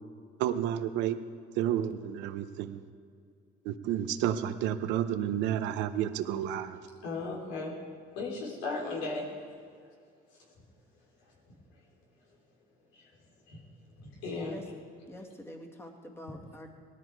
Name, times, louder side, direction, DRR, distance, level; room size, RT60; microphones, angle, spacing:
voice 1, 0.4-1.2 1.6-2.8 3.6-6.8, right 10 dB, 85° right, 10 dB, 0.9 m, -31 dB
voice 2, 7.0-7.8 8.2-9.3 12.9-13.1 13.5-13.6 14.0-14.6 16.3-16.4, left 3 dB, 90° left, -1 dB, 3.6 m, -36 dB
voice 3, 15.1-16.7, equal, 15° left, 1 dB, 2.1 m, -46 dB
19.0 x 13.0 x 4.7 m, 2.2 s
cardioid pair, 100°, 18 cm